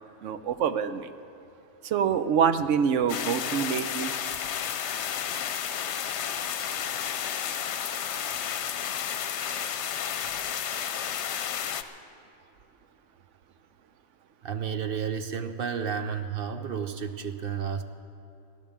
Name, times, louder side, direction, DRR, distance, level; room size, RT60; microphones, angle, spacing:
voice 1, 0.2-1.1 1.8-4.1, right 7 dB, 80° right, 11 dB, 1.0 m, -25 dB
sound 1, 3.1-11.8, left 8 dB, 70° left, 0.9 m, -32 dB
voice 2, 14.4-17.8, right 7 dB, 55° right, 8 dB, 0.8 m, -31 dB
16.0 x 10.5 x 7.3 m, 2.8 s
omnidirectional pair, 1.2 m